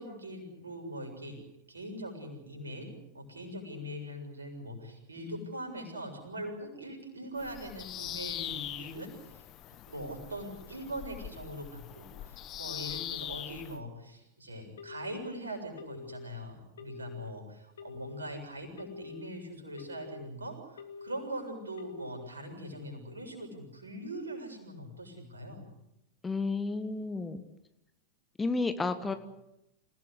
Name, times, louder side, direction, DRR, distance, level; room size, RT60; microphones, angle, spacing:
voice 1, 0.0-1.4 1.7-9.4 9.9-25.7, right 1 dB, 75° right, 4 dB, 7.2 m, -42 dB
Bird vocalization bird call bird song, 7.4-13.8, left 12 dB, 35° left, 1.5 m, -42 dB
Telephone, 14.8-15.3 15.8-16.3 16.8-17.3 17.8-18.3 18.8-19.3 19.8-20.3 20.8-21.3 21.8-22.3, left 5 dB, 65° left, 2.2 m, -46 dB
voice 2, 26.2-27.4 28.4-29.1, left 3 dB, 10° left, 9 dB, 1.6 m, -31 dB
28.0 x 18.0 x 8.2 m, 0.86 s
figure-of-eight pair, 90°, 0 cm